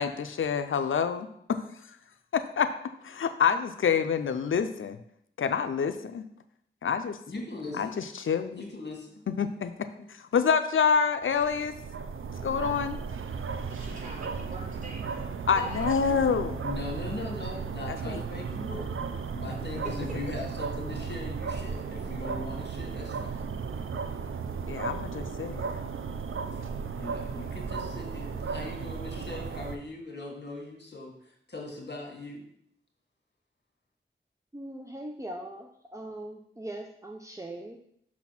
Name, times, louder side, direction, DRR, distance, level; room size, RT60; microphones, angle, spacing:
voice 1, 0.0-1.6 2.3-2.7 3.0-5.0 5.4-6.2 6.8-7.2 7.8-8.6 9.3-9.7 10.2-11.7 12.4-13.0 15.5-16.6 17.9-18.2 24.7-25.7, left 6 dB, 90° left, 9 dB, 0.5 m, -27 dB
voice 2, 7.3-8.0 8.5-9.2 16.6-23.5 26.5-32.5, left 2 dB, 60° left, 0 dB, 1.8 m, -40 dB
sound 1, 11.2-29.8, right 5 dB, 90° right, 0.5 m, -35 dB
voice 3, 13.7-15.9 19.8-19.9, right 1 dB, 40° right, -4 dB, 2.7 m, -43 dB
voice 4, 34.5-37.8, right 1 dB, 15° right, 2 dB, 0.7 m, -40 dB
6.1 x 4.2 x 5.9 m, 0.69 s
wide cardioid pair, 55°, 20 cm